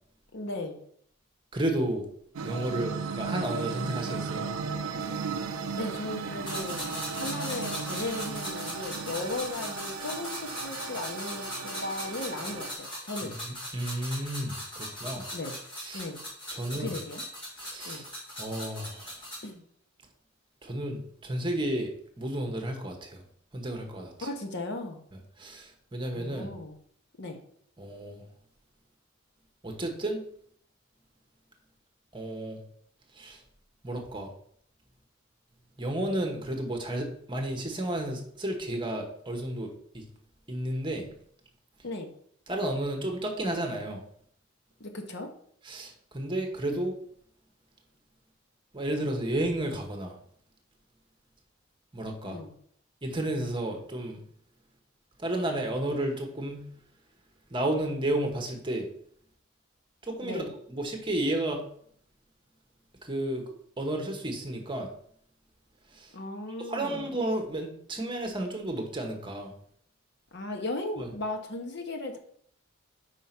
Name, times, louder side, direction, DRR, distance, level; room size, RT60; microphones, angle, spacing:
voice 1, 0.3-0.8 5.7-13.4 15.3-15.6 15.9-16.2 16.8-17.2 17.8-18.0 19.4-19.6 24.2-25.0 26.1-26.8 27.2-27.4 41.8-42.1 44.8-45.3 52.2-52.6 60.2-60.5 66.1-67.1 70.3-72.2, left 2 dB, 55° left, 4 dB, 1.0 m, -36 dB
voice 2, 1.5-2.0 2.4-4.4 13.4-15.3 15.8-16.0 16.5-17.0 17.6-18.0 18.4-19.1 20.6-21.9 22.2-23.2 23.5-24.3 25.4-26.5 27.8-28.2 29.6-30.2 32.1-32.6 33.2-33.4 33.8-34.3 35.8-40.0 40.5-41.0 42.5-44.0 45.6-46.9 48.7-50.2 51.9-52.4 53.0-54.2 55.2-56.7 57.5-58.9 60.0-60.4 60.7-61.6 63.0-63.4 63.8-64.9 65.9-66.1 66.7-69.5 71.0-71.1, right 1 dB, 25° right, 2 dB, 1.0 m, -32 dB
sound 1, 2.4-12.7, right 5 dB, 85° right, 0.5 m, -36 dB
sound 2, 6.4-19.5, equal, 25° left, 2.6 m, -39 dB
4.9 x 4.5 x 5.8 m, 0.63 s
head